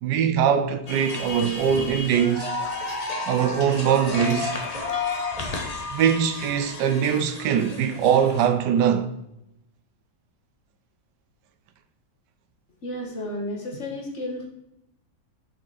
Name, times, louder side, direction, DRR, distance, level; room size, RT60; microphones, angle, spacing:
voice 1, 0.0-2.5 3.3-4.6 5.9-9.1, right 8 dB, 85° right, 1.2 m, -22 dB
sound 1, 0.9-8.5, left 3 dB, 30° left, 0.8 m, -32 dB
voice 2, 12.8-14.5, left 1 dB, 45° left, 1.5 m, -32 dB
6.1 x 5.8 x 4.0 m
omnidirectional pair, 1.8 m